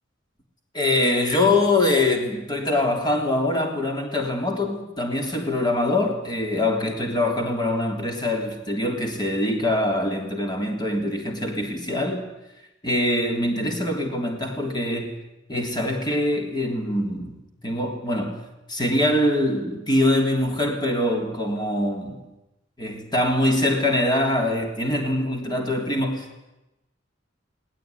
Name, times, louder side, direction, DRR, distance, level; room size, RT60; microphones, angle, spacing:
voice 1, 0.7-12.2 12.8-15.2 15.5-18.4 18.7-22.3 22.8-26.4, left 1 dB, 25° left, 2 dB, 3.5 m, -24 dB
20.0 x 19.5 x 9.7 m, 0.94 s
head